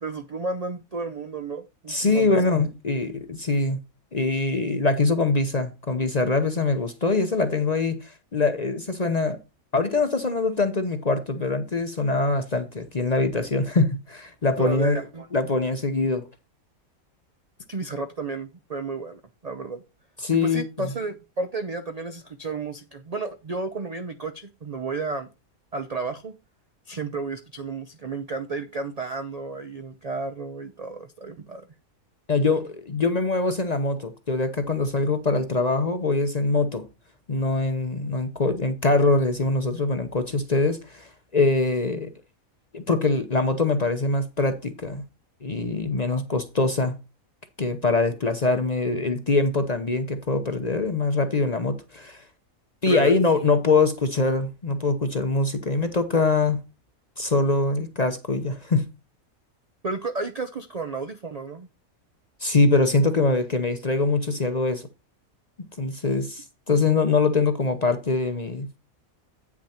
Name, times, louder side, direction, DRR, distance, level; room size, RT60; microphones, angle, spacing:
voice 1, 0.0-2.5 14.6-15.3 17.7-19.8 20.3-25.3 25.7-26.4 26.9-31.7 52.9-53.2 59.8-61.7, right 3 dB, 50° right, 0.4 m, -32 dB
voice 2, 1.9-3.8 4.1-9.4 9.7-15.0 15.3-16.2 20.2-20.9 32.3-36.9 37.3-42.1 42.7-45.0 45.4-46.9 47.6-52.2 52.8-56.6 57.2-58.8 62.4-64.8 65.8-68.7, left 3 dB, 35° left, 0.7 m, -23 dB
8.9 x 6.1 x 4.3 m
omnidirectional pair, 1.5 m